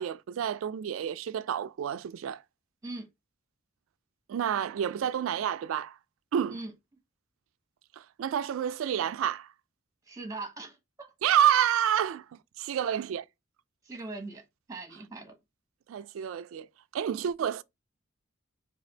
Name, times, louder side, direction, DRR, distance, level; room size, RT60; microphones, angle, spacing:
voice 1, 0.0-2.4 4.3-6.0 6.3-6.6 8.0-9.5 11.2-12.2 12.6-13.2 15.9-16.7 16.9-17.6, right 9 dB, 85° right, 0.3 m, -29 dB
voice 2, 10.1-11.1 12.8-12.9 13.8-14.4 14.7-15.3, right 2 dB, 15° right, 0.9 m, -40 dB
3.3 x 2.4 x 3.9 m
head